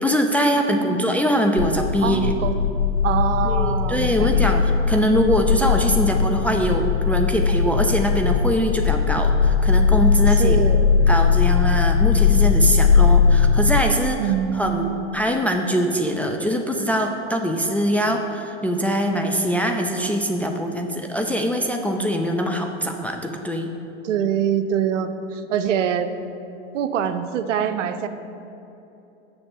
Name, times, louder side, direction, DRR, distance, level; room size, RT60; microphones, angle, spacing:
voice 1, 0.0-2.3 3.4-4.6 4.9-10.6 11.1-14.2 14.5-14.9 15.1-23.7, equal, 5° left, 2 dB, 0.3 m, -22 dB
voice 2, 0.7-1.3 2.0-2.6 3.0-4.6 10.4-10.9 14.2-15.1 24.0-26.1 26.7-28.1, right 9 dB, 80° right, 10 dB, 0.7 m, -24 dB
sound 1, 1.6-13.8, left 6 dB, 50° left, 0.7 m, -19 dB
7.0 x 6.3 x 7.2 m, 2.9 s
hypercardioid pair, 110°, 36 cm